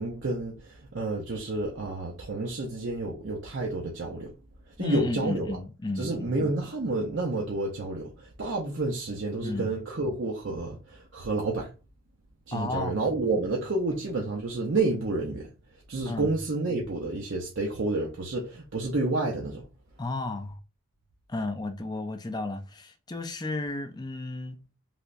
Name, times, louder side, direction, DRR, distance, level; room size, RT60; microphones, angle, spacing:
voice 1, 0.0-4.3 4.8-5.6 6.0-11.7 12.5-15.5 15.9-19.6, right 2 dB, 55° right, 0.6 m, -30 dB
voice 2, 4.8-6.4 9.4-9.7 12.5-13.1 16.0-16.3 20.0-20.6 21.3-24.6, left 2 dB, 20° left, 0.4 m, -33 dB
3.3 x 2.9 x 2.5 m
head